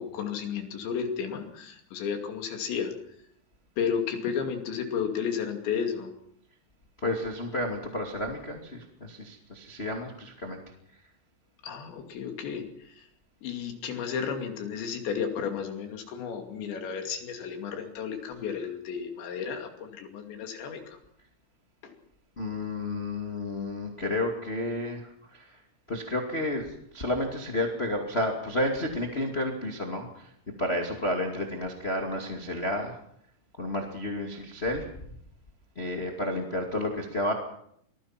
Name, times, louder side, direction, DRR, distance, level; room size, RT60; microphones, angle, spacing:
voice 1, 0.0-2.9 3.8-6.1 11.6-13.0 13.4-20.8 21.8-21.9, left 7 dB, 70° left, 4 dB, 4.7 m, -33 dB
voice 2, 7.0-10.6 18.3-18.5 22.4-25.6 25.9-30.3 30.6-33.0 33.6-34.9 35.7-37.3, left 1 dB, 25° left, 2 dB, 1.4 m, -31 dB
26.0 x 19.5 x 6.0 m, 0.70 s
omnidirectional pair, 5.3 m